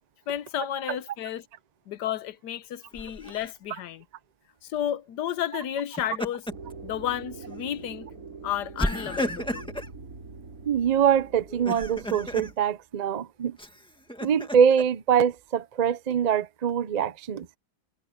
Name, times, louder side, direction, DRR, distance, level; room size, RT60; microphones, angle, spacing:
voice 1, 0.3-1.5 1.9-4.0 4.6-6.5 6.8-8.1 8.4-9.7, left 10 dB, 80° left, 1.4 m, -32 dB
Laughter, 2.9-3.5 5.8-6.7 7.1-7.3 8.8-9.9 11.5-12.5 13.6-14.8, equal, 5° left, 1.7 m, -33 dB
sound 1, 6.5-12.5, right 4 dB, 55° right, 4.7 m, -44 dB
voice 2, 10.7-13.6 14.2-17.5, right 8 dB, 75° right, 0.3 m, -24 dB
omnidirectional pair, 1.8 m